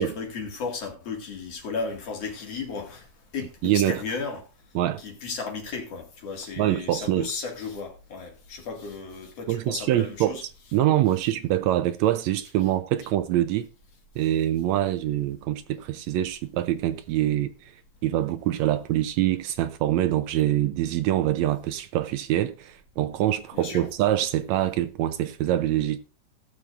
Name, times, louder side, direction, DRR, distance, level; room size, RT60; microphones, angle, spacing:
voice 1, 0.0-3.1 3.3-4.5 5.0-10.4 23.5-23.9, left 4 dB, 55° left, 3.0 m, -34 dB
voice 2, 3.6-4.0 4.8-5.0 6.6-7.3 9.5-10.4 10.7-13.7 14.2-17.7 18.0-26.0, right 13 dB, 80° right, 1.8 m, -25 dB
18.0 x 7.1 x 2.5 m
omnidirectional pair, 3.4 m